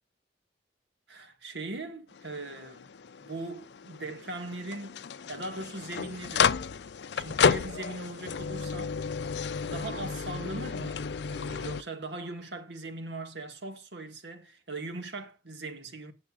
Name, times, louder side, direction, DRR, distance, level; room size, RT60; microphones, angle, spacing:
voice 1, 1.1-2.9 3.2-5.0 5.3-6.5 7.1-9.0 9.6-16.1, right 2 dB, 75° right, 1.9 m, -40 dB
sound 1, 2.1-11.8, left 6 dB, 70° left, 0.5 m, -32 dB
18.0 x 7.2 x 2.5 m
head